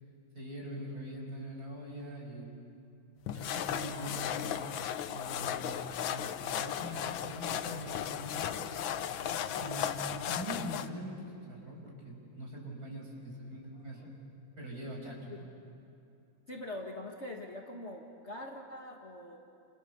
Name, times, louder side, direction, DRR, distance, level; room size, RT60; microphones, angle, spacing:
voice 1, 0.3-2.5 3.3-4.6 5.1-6.3 6.6-8.7 9.2-14.1 14.6-15.4, equal, 50° right, -1 dB, 6.0 m, -43 dB
sound 1, 3.3-10.9, left 10 dB, 85° left, 1.6 m, -36 dB
voice 2, 9.4-10.4 13.7-14.0 15.3-15.4 16.5-19.4, left 1 dB, 35° left, 1 dB, 1.9 m, -44 dB
29.5 x 29.0 x 6.9 m, 2.8 s
omnidirectional pair, 2.1 m